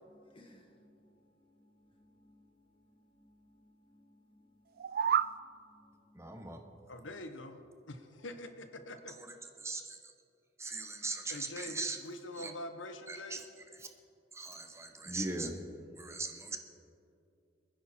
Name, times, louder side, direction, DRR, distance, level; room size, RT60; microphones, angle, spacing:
voice 1, 0.1-6.5, left 1 dB, 30° left, 3 dB, 1.9 m, -65 dB
sound 1, 4.7-5.4, right 8 dB, 50° right, 0.3 m, -30 dB
voice 2, 6.1-6.6 9.2-9.3 9.6-10.1 10.6-12.0 12.4-12.5 13.1-13.4 13.7-13.9 14.3-15.6 15.9-16.6, right 3 dB, 15° right, 4 dB, 1.1 m, -40 dB
voice 3, 6.9-7.6 7.9-9.1 11.3-13.4, left 1 dB, 85° left, 7 dB, 1.1 m, -44 dB
27.0 x 10.0 x 4.3 m, 2.6 s
head